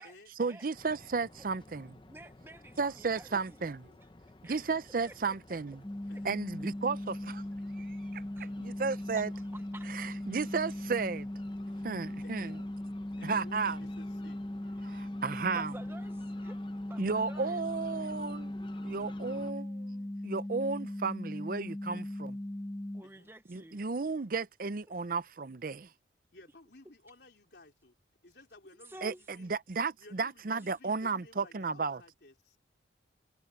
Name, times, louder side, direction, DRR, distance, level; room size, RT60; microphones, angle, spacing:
voice 1, 0.4-2.0 2.8-3.9 4.5-5.8 6.2-7.4 7.8-9.3 9.9-11.3 11.8-12.6 13.2-13.8 14.8-15.7 17.0-18.5 18.8-22.3 23.5-25.9 29.0-29.1 29.4-32.0, right 4 dB, 45° right, 0.6 m, -34 dB
sound 1, 0.7-19.5, left 2 dB, 25° left, 0.7 m, -54 dB
voice 2, 2.0-3.6 4.4-4.7 5.1-5.6 6.1-6.2 8.3-8.5 9.2-10.1 15.5-16.6 16.9-17.6 22.9-23.8 28.7-29.2, right 2 dB, 10° right, 0.7 m, -51 dB
sound 2, 5.8-23.0, left 1 dB, 10° left, 0.3 m, -39 dB
voice 3, 6.1-6.4 12.2-12.6 13.2-14.4 21.9-22.1 23.0-23.3 26.3-27.9 28.2-29.6 30.0-32.6, left 2 dB, 60° left, 4.2 m, -56 dB
head